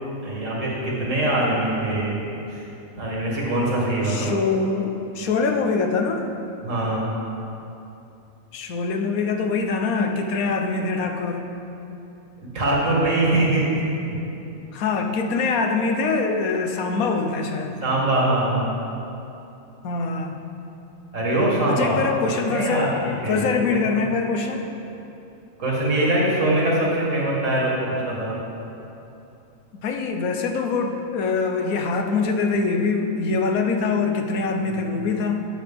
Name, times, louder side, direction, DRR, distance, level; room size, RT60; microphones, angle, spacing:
voice 1, 0.2-2.2 2.5-2.6 3.0-4.4 6.6-7.1 12.5-14.1 17.8-18.6 21.1-22.0 22.5-23.8 25.6-28.4, right 1 dB, 60° right, -5 dB, 2.2 m, -23 dB
voice 2, 4.0-6.2 8.5-11.4 14.7-17.8 19.8-20.4 21.7-23.0 23.3-24.7 29.7-35.5, left 4 dB, 85° left, 4 dB, 1.2 m, -24 dB
10.5 x 7.7 x 3.5 m, 2.8 s
omnidirectional pair, 1.5 m